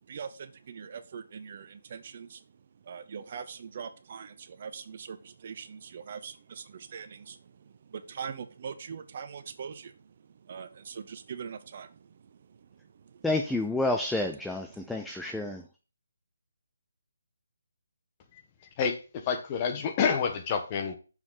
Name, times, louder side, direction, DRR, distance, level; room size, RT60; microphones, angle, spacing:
voice 1, 0.1-2.4 2.9-7.4 7.9-9.9 10.5-12.0, right 6 dB, 45° right, 0.7 m, -41 dB
voice 2, 13.2-15.6, left 2 dB, 5° left, 0.5 m, -29 dB
voice 3, 18.8-21.0, left 6 dB, 25° left, 1.2 m, -28 dB
6.6 x 6.0 x 3.9 m
figure-of-eight pair, 160°, 0 cm